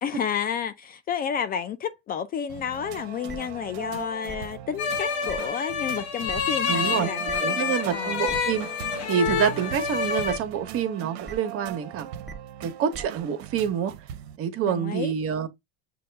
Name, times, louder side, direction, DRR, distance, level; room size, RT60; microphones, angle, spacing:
voice 1, 0.0-8.2 14.7-15.1, left 8 dB, 30° left, 0.4 m, -31 dB
sound 1, 2.5-14.4, right 11 dB, 75° right, 0.7 m, -40 dB
sound 2, 3.3-3.4 4.3-4.4 5.3-5.4 6.3-6.4 7.3-7.4 8.3-8.4 9.3-9.4 10.3-10.4 11.2-11.3 12.2-12.3 12.9-13.0, right 3 dB, ahead, 1.1 m, -38 dB
sound 3, 4.8-10.4, left 6 dB, 90° left, 1.0 m, -28 dB
voice 2, 6.7-7.1 7.4-8.7 9.1-12.1 12.6-13.9 14.4-15.5, right 8 dB, 45° right, 1.0 m, -27 dB
6.2 x 2.3 x 3.3 m
supercardioid pair, 105°, 32 cm